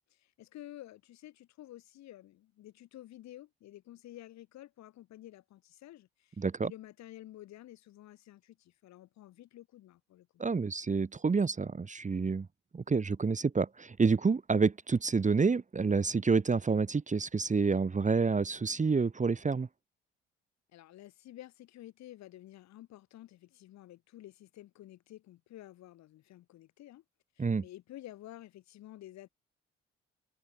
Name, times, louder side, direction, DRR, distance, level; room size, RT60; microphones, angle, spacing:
voice 1, 0.1-10.3 20.7-27.0 27.4-29.3, left 14 dB, 65° left, 4.1 m, -51 dB
voice 2, 6.4-6.7 10.4-12.5 12.7-19.7 27.4-27.6, right 4 dB, 25° right, 1.2 m, -28 dB
hypercardioid pair, 45°, 29 cm